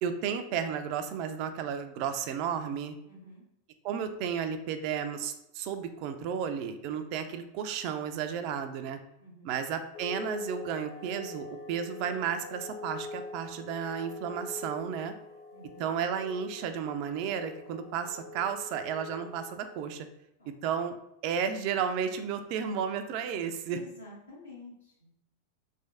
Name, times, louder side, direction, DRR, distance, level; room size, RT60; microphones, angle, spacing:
voice 1, 0.0-3.0 3.8-9.0 9.4-15.1 15.8-20.1 20.5-21.0 21.2-23.8, right 7 dB, 45° right, 8 dB, 0.3 m, -33 dB
voice 2, 3.0-3.4 9.2-9.6 15.5-16.0 20.4-20.6 23.7-25.1, left 1 dB, 75° left, -5 dB, 1.3 m, -50 dB
sound 1, 9.9-19.8, left 2 dB, 35° left, 0.5 m, -44 dB
3.3 x 3.2 x 2.6 m, 0.80 s
figure-of-eight pair, 90°, 0 cm